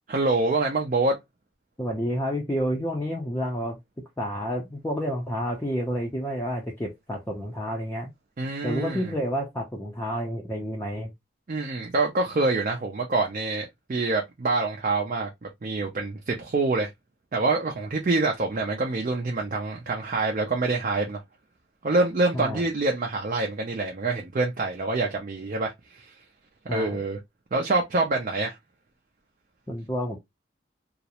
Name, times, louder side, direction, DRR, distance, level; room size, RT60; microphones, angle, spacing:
voice 1, 0.1-1.2 8.4-9.1 11.5-16.9 17.3-21.2 21.8-26.2 26.7-27.2 27.5-28.6, right 3 dB, 45° right, 0.4 m, -26 dB
voice 2, 1.8-3.8 4.2-8.1 8.6-11.1 22.3-22.6 26.7-27.0 29.7-30.2, equal, 10° left, 0.4 m, -29 dB
2.4 x 2.0 x 2.8 m
head